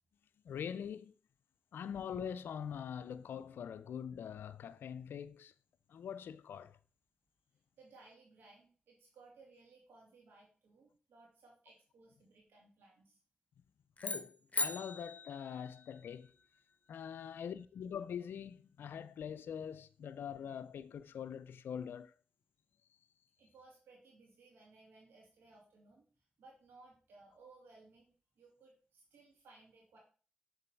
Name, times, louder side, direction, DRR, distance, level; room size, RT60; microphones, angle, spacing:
voice 1, 0.4-1.1 1.7-5.5 5.9-6.8 14.0-16.3 16.9-22.1, left 8 dB, 85° left, 0.4 m, -43 dB
voice 2, 7.8-13.2 23.4-26.1 26.4-30.0, right 3 dB, 90° right, 2.7 m, -61 dB
sound 1, 14.0-16.3, left 3 dB, 40° left, 1.0 m, -40 dB
6.8 x 4.0 x 4.5 m
supercardioid pair, 40°, 4 cm